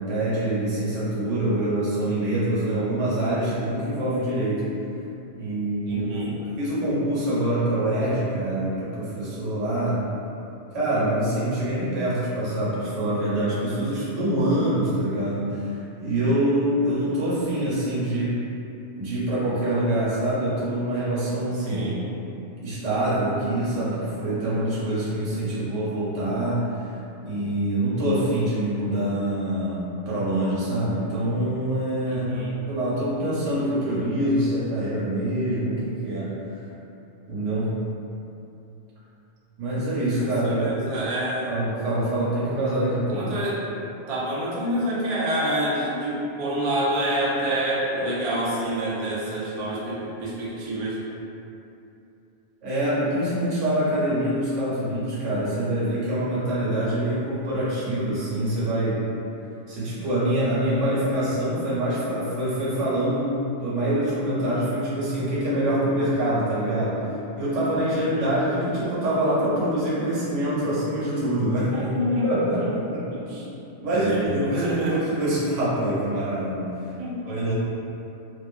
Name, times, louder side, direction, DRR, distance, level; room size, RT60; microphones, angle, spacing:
voice 1, 0.0-4.6 5.3-6.1 6.4-10.0 10.7-18.4 19.0-21.8 22.6-26.7 27.2-32.3 32.7-36.3 37.3-37.7 39.6-41.0 41.5-43.3 52.6-59.0 59.7-63.3 63.6-67.0 67.3-71.7 72.2-73.0 73.3-73.4 73.8-76.7 77.3-77.5, right 1 dB, 85° right, -9 dB, 1.2 m, -25 dB
voice 2, 5.9-6.3 21.6-22.0 32.1-32.5 40.4-41.5 43.1-43.6 44.1-51.0 68.0-68.3 71.7-73.4 73.9-75.0 77.0-77.1, right 1 dB, 55° right, -6 dB, 0.4 m, -28 dB
2.4 x 2.4 x 2.4 m, 2.8 s
omnidirectional pair, 1.2 m